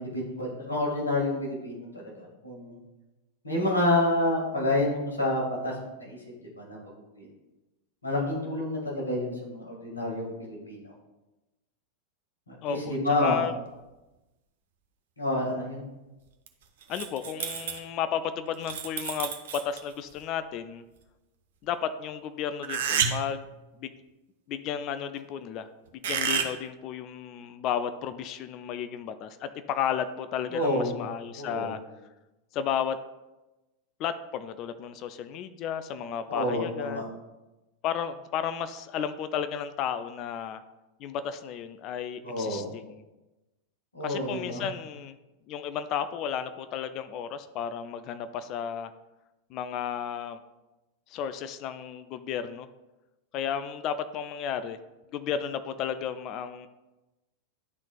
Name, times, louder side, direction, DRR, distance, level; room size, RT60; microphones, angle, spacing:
voice 1, 0.0-2.0 2.4-2.8 3.4-6.2 6.6-6.8 7.1-7.3 8.0-10.8 12.5-13.5 15.2-15.8 30.5-30.9 31.4-31.8 36.3-37.0 42.2-42.7 43.9-44.6, left 1 dB, 80° left, -3 dB, 1.7 m, -28 dB
voice 2, 12.6-13.5 16.9-19.3 19.6-20.8 21.6-23.5 23.8-23.9 24.5-25.7 25.9-31.8 32.5-33.0 34.0-37.0 37.8-40.6 41.0-43.0 44.0-45.2 45.5-48.9 49.5-50.4 51.1-52.7 53.3-54.8 55.1-56.7, left 8 dB, 40° left, 11 dB, 0.3 m, -33 dB
sound 1, 16.5-16.6 16.8-17.8 18.5-19.9 22.6-23.4 26.0-26.5, right 7 dB, 60° right, 0.6 m, -29 dB
10.5 x 3.9 x 2.3 m, 1.0 s
figure-of-eight pair, 90°, 0 cm